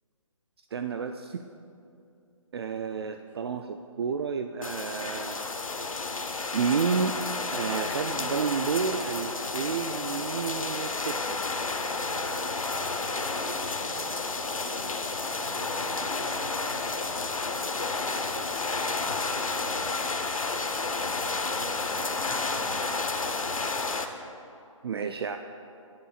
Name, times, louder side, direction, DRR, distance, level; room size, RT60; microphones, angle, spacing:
voice 1, 0.7-1.4 2.5-5.4 6.5-7.2 7.5-11.4 24.8-25.4, right 6 dB, 50° right, 7 dB, 0.4 m, -30 dB
voice 2, 2.7-3.3 13.0-14.2 15.3-17.2 17.5-19.8 21.1-23.0, right 1 dB, 10° right, -1 dB, 1.1 m, -48 dB
sound 1, 4.6-24.1, left 3 dB, 85° left, 0.8 m, -31 dB
16.5 x 10.5 x 2.4 m, 2.6 s
figure-of-eight pair, 145°, 17 cm